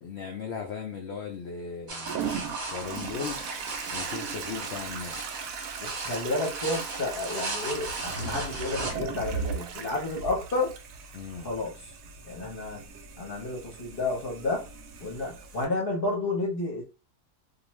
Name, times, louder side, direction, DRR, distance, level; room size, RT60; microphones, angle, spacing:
voice 1, 0.0-3.4 3.9-5.5 11.1-11.5, left 6 dB, 85° left, 2 dB, 0.5 m, -38 dB
sound 1, 1.9-8.9, right 2 dB, 35° right, 0.8 m, -37 dB
Toilet flush, 2.1-15.7, right 6 dB, 70° right, 0.9 m, -38 dB
voice 2, 5.8-10.8 11.4-11.9 12.2-12.8 13.2-14.7 15.0-16.8, left 2 dB, 45° left, -2 dB, 0.8 m, -31 dB
2.5 x 2.3 x 3.0 m, 0.31 s
omnidirectional pair, 1.7 m